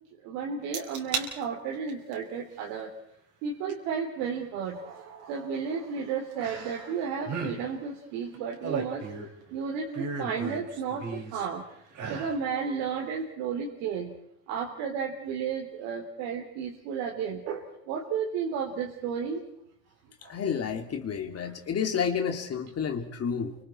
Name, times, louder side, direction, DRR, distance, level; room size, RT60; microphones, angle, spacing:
voice 1, 0.2-2.9 3.4-9.1 9.5-11.6 12.1-14.1 14.5-19.4 20.2-20.3, right 6 dB, 70° right, -1 dB, 3.4 m, -33 dB
sound 1, 0.7-1.3 1.7-2.1 3.7-3.8 6.4-7.0 7.2-7.6 8.3-9.4 9.9-11.5 11.9-12.4 12.8-12.9, right 5 dB, 45° right, 4.5 m, -35 dB
voice 2, 20.2-23.6, left 7 dB, 35° left, 5 dB, 2.6 m, -30 dB
29.5 x 25.0 x 4.4 m, 0.74 s
supercardioid pair, 110°, 42 cm